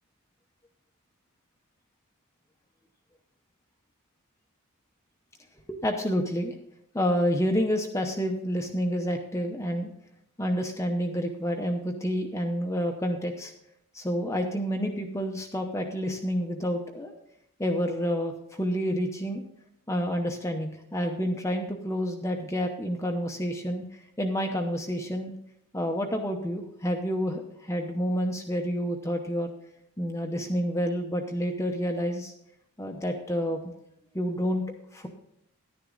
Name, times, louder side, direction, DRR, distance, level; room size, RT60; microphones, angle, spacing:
voice 1, 5.7-6.5 6.9-9.9 10.4-13.5 13.9-17.1 17.6-18.3 18.6-19.4 19.9-23.8 24.2-25.3 25.7-29.5 30.0-32.3 32.8-33.7 34.1-34.6 34.9-35.1, equal, 15° left, 3 dB, 0.8 m, -29 dB
11.5 x 10.0 x 3.9 m, 0.74 s
head